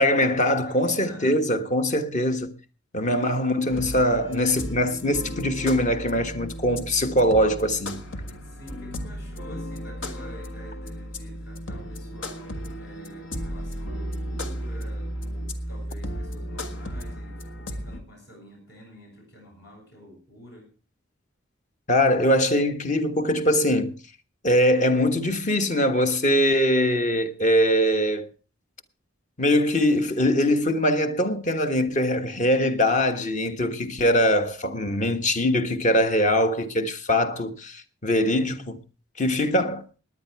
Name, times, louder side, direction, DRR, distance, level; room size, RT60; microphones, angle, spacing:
voice 1, 0.0-2.6 2.9-8.0 21.9-24.0 24.4-28.3 29.4-38.8 39.2-39.9, left 1 dB, 40° left, 1.3 m, -22 dB
voice 2, 0.6-1.6 3.1-3.3 8.4-20.7, equal, 60° left, 7.5 m, -48 dB
sound 1, 3.7-18.0, equal, 75° left, 1.7 m, -34 dB
18.0 x 10.0 x 4.6 m
head